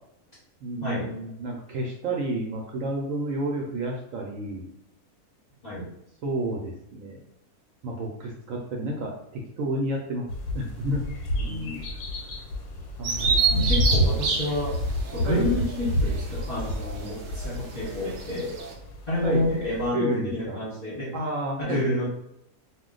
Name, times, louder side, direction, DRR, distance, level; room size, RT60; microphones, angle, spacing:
voice 1, 0.6-4.7 6.2-7.2 7.8-10.3 10.5-11.2 11.5-11.8 13.0-13.9 15.3-15.4 19.2-19.4 19.9-20.6 21.1-21.8, right 1 dB, 70° right, -1 dB, 0.8 m, -31 dB
sound 1, 10.3-19.9, equal, 90° left, 1.2 m, -29 dB
voice 2, 11.4-11.8 13.5-14.8 15.1-18.6 19.1-21.1 21.6-22.1, left 1 dB, 35° left, -7 dB, 0.8 m, -29 dB
Bird vocalization bird call bird song, 13.0-18.7, right 5 dB, 90° right, 0.4 m, -29 dB
2.4 x 2.1 x 3.7 m, 0.75 s
omnidirectional pair, 1.6 m